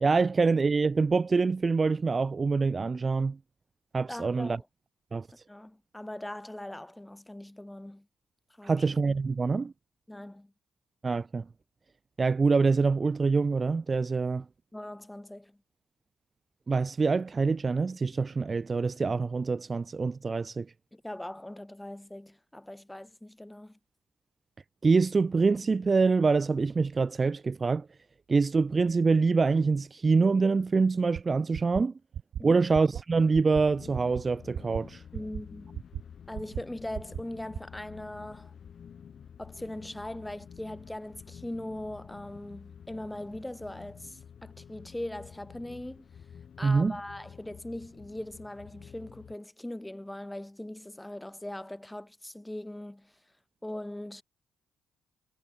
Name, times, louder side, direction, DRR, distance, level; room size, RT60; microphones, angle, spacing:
voice 1, 0.0-3.4 3.9-4.6 5.1-5.3 8.6-9.7 11.0-11.4 12.2-14.4 16.7-20.7 24.8-27.9 28.3-31.9 32.4-35.0 46.6-46.9, right 4 dB, 30° right, 0.7 m, -25 dB
voice 2, 4.1-4.7 5.5-8.1 8.6-8.9 10.1-10.5 14.7-15.6 20.9-23.8 32.4-32.7 35.1-35.7 36.3-38.5 39.4-46.1 46.6-53.2 53.6-54.2, left 1 dB, 10° left, 3.7 m, -40 dB
sound 1, 31.2-31.3 31.5-31.8 32.1-32.4 32.7-33.0 33.3-33.6 33.9-34.2 34.5-34.8 35.1-35.4 35.7-36.0 36.3-36.6 36.9-37.2 37.5-37.6, right 9 dB, 65° right, 0.8 m, -36 dB
sound 2, 33.5-49.4, left 7 dB, 55° left, 5.8 m, -50 dB
cardioid pair, 90°, 0 cm